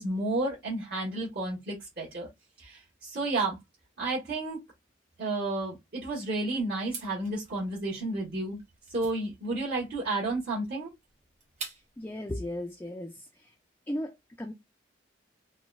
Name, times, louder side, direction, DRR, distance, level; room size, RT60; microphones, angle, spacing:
voice 1, 0.0-2.3 2.6-3.6 4.0-4.6 5.2-8.6 8.9-10.9, right 2 dB, 55° right, 1.3 m, -31 dB
sound 1, 6.8-12.1, right 4 dB, 35° right, 1.2 m, -46 dB
voice 2, 12.0-13.6 13.9-14.5, left 1 dB, 10° left, 0.3 m, -36 dB
3.9 x 2.0 x 2.3 m
head